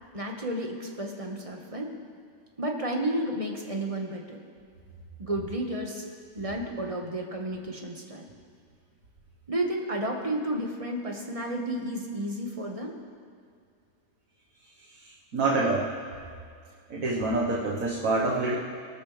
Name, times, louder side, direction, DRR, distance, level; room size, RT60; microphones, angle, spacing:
voice 1, 0.1-1.9 2.6-4.4 5.2-6.1 6.3-8.2 9.5-12.9, right 1 dB, 25° right, 1 dB, 1.6 m, -32 dB
voice 2, 15.3-15.9 16.9-18.5, right 2 dB, 65° right, -3 dB, 1.8 m, -26 dB
23.5 x 13.0 x 3.4 m, 2.3 s
omnidirectional pair, 1.6 m